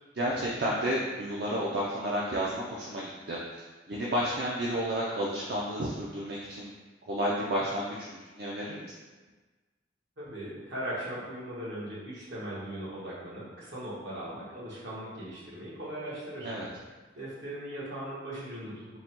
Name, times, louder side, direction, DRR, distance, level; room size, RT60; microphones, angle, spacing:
voice 1, 0.1-3.4 3.9-6.7 7.1-8.9 16.4-16.7, equal, 60° right, -4 dB, 0.5 m, -31 dB
voice 2, 10.2-16.5 17.1-19.0, right 1 dB, 75° right, -7 dB, 1.3 m, -39 dB
3.9 x 2.2 x 4.4 m, 1.3 s
head